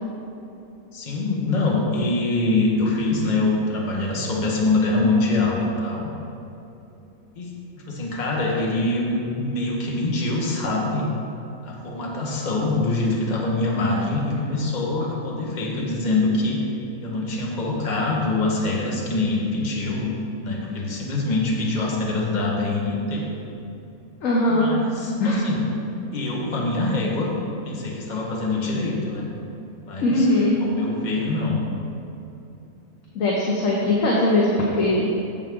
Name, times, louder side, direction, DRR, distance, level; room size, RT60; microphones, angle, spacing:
voice 1, 0.9-6.1 7.4-11.1 11.6-16.7 17.0-20.1 20.4-23.3 24.5-25.7 26.1-27.3 27.6-29.3 29.8-30.3 30.6-31.6, left 2 dB, 35° left, -2 dB, 1.2 m, -24 dB
voice 2, 24.2-24.7 25.2-25.4 30.0-30.6 33.1-34.5 34.7-35.1, left 2 dB, 65° left, -3 dB, 1.3 m, -20 dB
8.5 x 7.3 x 3.7 m, 2.8 s
omnidirectional pair, 1.5 m